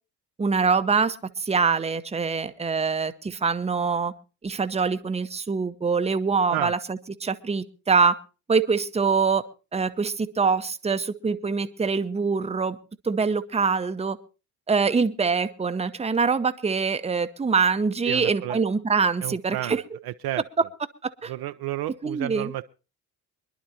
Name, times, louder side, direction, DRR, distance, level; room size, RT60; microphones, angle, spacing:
voice 1, 0.4-4.1 4.4-8.1 8.5-9.4 9.7-12.8 13.0-14.2 14.7-19.8 21.0-21.3 22.0-22.5, right 5 dB, 15° right, 0.8 m, -24 dB
voice 2, 18.1-18.6 19.2-19.8 20.0-20.4 21.3-22.6, right 15 dB, 50° right, 0.6 m, -31 dB
25.0 x 11.0 x 2.8 m
hypercardioid pair, 55°, 49 cm